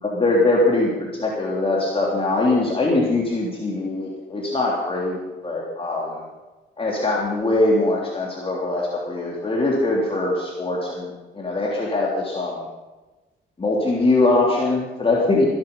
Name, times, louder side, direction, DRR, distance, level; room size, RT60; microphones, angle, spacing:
voice 1, 0.0-0.9 1.2-6.2 6.8-12.6 13.6-15.5, left 2 dB, 30° left, -3 dB, 3.3 m, -22 dB
20.0 x 11.0 x 5.5 m, 1.2 s
cardioid pair, 90°, 20 cm